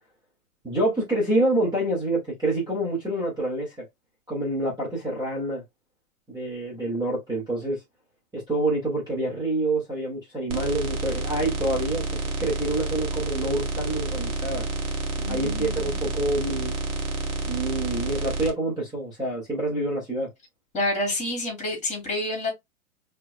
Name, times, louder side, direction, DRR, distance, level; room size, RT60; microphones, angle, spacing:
voice 1, 0.6-3.9 4.3-5.6 6.3-7.8 8.3-14.7 15.3-16.8 17.5-20.3, right 1 dB, 10° right, 1.9 m, -27 dB
sound 1, 10.5-18.5, right 3 dB, 60° right, 1.7 m, -29 dB
voice 2, 15.2-16.0 20.7-22.5, left 1 dB, 15° left, 2.8 m, -28 dB
4.4 x 3.4 x 2.3 m
hypercardioid pair, 115°, 43 cm